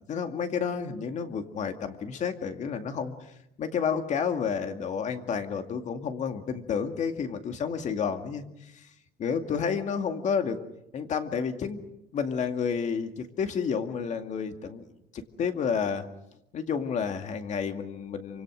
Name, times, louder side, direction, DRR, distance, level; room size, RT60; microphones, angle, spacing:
voice 1, 0.1-3.1 3.6-8.9 9.2-10.6 10.9-11.8 12.1-14.9 15.1-16.0 16.5-18.4, left 6 dB, 45° left, 6 dB, 2.2 m, -30 dB
27.5 x 25.5 x 6.4 m, 0.83 s
cardioid pair, 165°, 18 cm